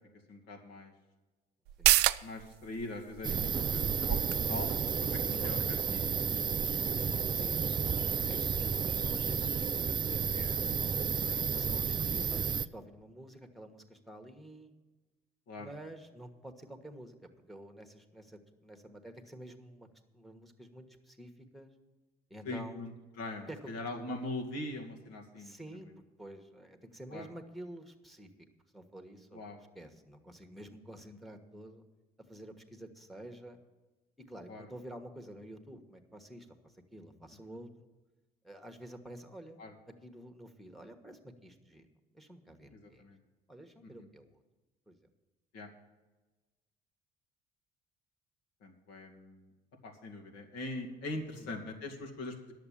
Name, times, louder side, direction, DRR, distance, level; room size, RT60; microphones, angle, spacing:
voice 1, 0.3-0.9 2.2-4.2 4.5-4.7 5.0-6.2 11.2-11.7 15.5-15.7 22.4-25.9 27.1-27.3 29.3-29.6 34.5-34.7 39.6-39.7 42.7-43.2 43.8-44.1 45.5-45.7 48.6-49.5 49.8-52.5, left 2 dB, 85° left, 0 dB, 2.4 m, -42 dB
sound 1, 1.6-8.8 9.1-9.2, right 16 dB, 90° right, 0.4 m, -34 dB
sound 2, 3.2-12.7, right 6 dB, 25° right, 0.4 m, -32 dB
voice 2, 7.3-10.6 11.4-14.7 15.6-17.1 17.5-19.9 20.1-21.7 22.3-22.8 23.5-23.7 25.3-25.9 26.2-28.3 28.7-29.4 29.7-31.8 32.3-33.6 34.3-37.9 38.4-39.6 40.0-41.9 42.1-43.0 43.5-44.4 44.9-45.0 51.3-51.5, right 1 dB, ahead, 6 dB, 1.4 m, -49 dB
11.0 x 7.4 x 8.7 m, 1.2 s
cardioid pair, 110°, 17 cm